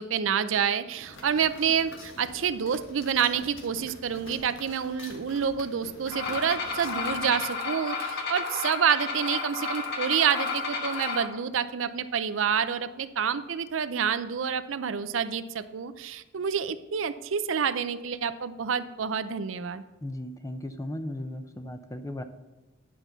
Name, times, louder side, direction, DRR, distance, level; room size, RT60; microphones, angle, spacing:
voice 1, 0.0-19.8, right 7 dB, 80° right, 12 dB, 0.5 m, -28 dB
sound 1, 1.0-7.4, left 1 dB, 80° left, 1.5 m, -47 dB
sound 2, 6.1-11.3, left 4 dB, 60° left, 1.3 m, -32 dB
voice 2, 20.0-22.2, left 1 dB, 15° left, 8 dB, 0.6 m, -36 dB
10.0 x 5.8 x 4.0 m, 1.1 s
head